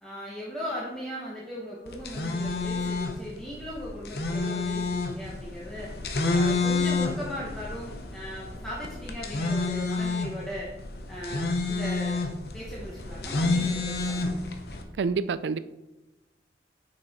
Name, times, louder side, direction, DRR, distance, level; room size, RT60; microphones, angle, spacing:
voice 1, 0.0-5.9 6.3-10.7 11.1-12.3 12.5-14.3, equal, 5° left, -7 dB, 1.0 m, -38 dB
sound 1, 1.9-14.8, left 3 dB, 60° left, 0.8 m, -29 dB
voice 2, 15.0-15.6, right 5 dB, 75° right, 15 dB, 0.3 m, -27 dB
6.4 x 5.5 x 4.2 m, 0.99 s
head